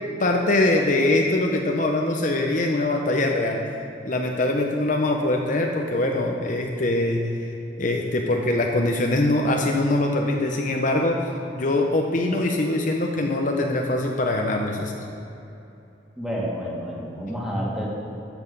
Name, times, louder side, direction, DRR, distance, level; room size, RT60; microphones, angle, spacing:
voice 1, 0.2-3.6 4.0-7.2 7.8-11.3 11.5-15.0, left 2 dB, 45° left, 2 dB, 0.8 m, -23 dB
voice 2, 16.2-17.9, equal, 5° right, -5 dB, 2.3 m, -29 dB
13.0 x 8.0 x 5.4 m, 2.8 s
head